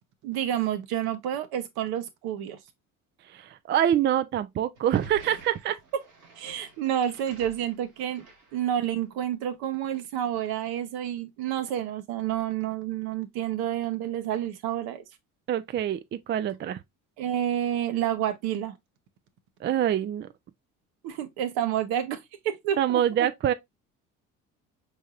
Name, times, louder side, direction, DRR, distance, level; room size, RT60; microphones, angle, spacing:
voice 1, 0.2-2.6 6.4-8.3 8.5-15.0 17.2-18.8 21.0-23.0, right 11 dB, 65° right, 0.9 m, -29 dB
voice 2, 3.3-5.8 15.5-16.8 19.6-20.3 22.8-23.5, right 10 dB, 30° right, 0.4 m, -25 dB
sound 1, 4.7-9.1, right 2 dB, 85° right, 1.7 m, -50 dB
5.3 x 3.3 x 2.4 m
hypercardioid pair, 65°, 41 cm